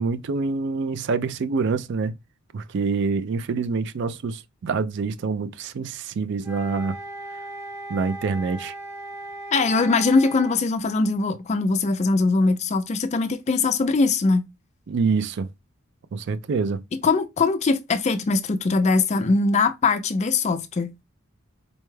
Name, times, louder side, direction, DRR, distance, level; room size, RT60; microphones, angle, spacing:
voice 1, 0.0-2.2 2.5-7.0 7.9-8.7 14.9-15.5 16.1-16.8, right 4 dB, 55° right, 0.3 m, -26 dB
sound 1, 6.4-10.6, right 2 dB, 10° right, 0.7 m, -37 dB
voice 2, 9.5-14.5 17.0-20.9, left 3 dB, 30° left, 0.3 m, -21 dB
4.1 x 2.2 x 3.1 m
head